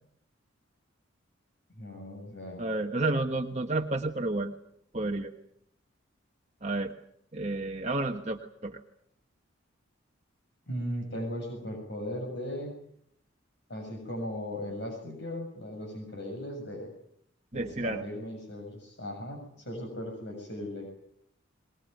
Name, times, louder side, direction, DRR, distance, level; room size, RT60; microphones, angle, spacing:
voice 1, 1.7-2.6 10.7-12.8 13.7-16.9 17.5-20.9, left 1 dB, 55° left, 3 dB, 7.0 m, -37 dB
voice 2, 2.6-4.5 4.9-5.3 6.6-6.9 7.3-8.8 17.5-18.0, right 2 dB, 35° right, 3 dB, 1.3 m, -31 dB
22.5 x 21.5 x 9.2 m, 0.71 s
head